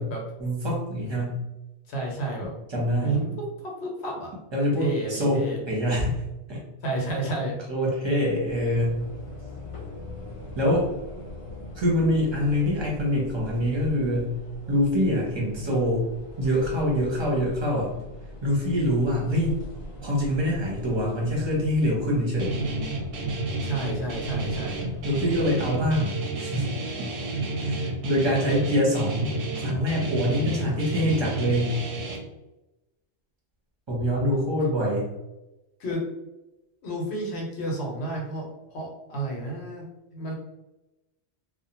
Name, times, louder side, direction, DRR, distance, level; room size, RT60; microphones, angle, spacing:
voice 1, 0.4-1.4 2.7-3.2 4.5-6.1 6.5-6.6 7.4-9.0 10.6-10.9 11.7-14.3 14.7-16.1 16.4-18.0 18.4-19.5 20.0-22.6 25.0-26.7 27.0-27.1 27.6-29.3 29.6-31.8 33.9-35.1, equal, 30° right, -3 dB, 0.7 m, -25 dB
voice 2, 1.9-2.5 3.0-3.3 3.6-4.3 4.8-5.6 6.8-7.6 19.9-20.0 23.6-24.8 35.8-36.1 36.8-39.9 40.1-40.3, right 2 dB, 75° left, -1 dB, 1.0 m, -31 dB
sound 1, 8.4-26.1, left 1 dB, 45° left, 0.4 m, -42 dB
Guitar, 22.4-32.2, right 2 dB, 65° right, 0.7 m, -30 dB
2.4 x 2.1 x 2.9 m, 0.99 s
omnidirectional pair, 1.1 m